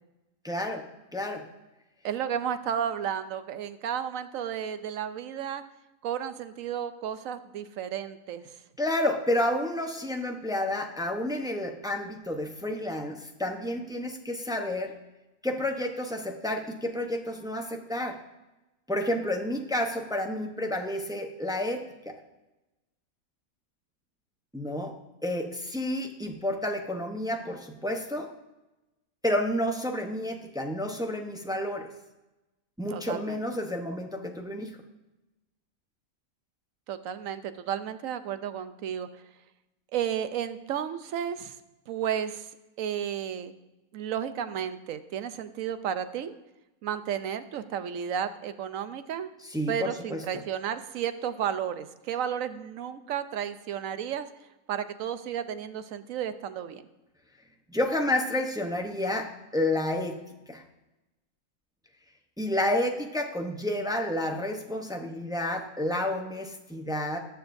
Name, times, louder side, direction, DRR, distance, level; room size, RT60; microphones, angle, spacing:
voice 1, 0.4-0.8 1.1-1.4 8.8-14.9 15.4-18.2 18.9-22.2 24.5-24.9 25.2-28.3 29.2-31.9 32.8-34.8 49.5-50.2 57.7-60.2 60.5-60.6 62.4-67.2, left 1 dB, 5° right, 3 dB, 0.5 m, -30 dB
voice 2, 2.0-5.6 6.0-8.5 32.9-33.4 36.9-39.2 39.9-41.6 41.9-42.5 42.8-43.5 43.9-46.3 46.8-49.3 49.7-54.3 54.7-56.9, right 9 dB, 70° right, 11 dB, 1.0 m, -33 dB
19.0 x 7.0 x 2.6 m, 1.0 s
omnidirectional pair, 1.5 m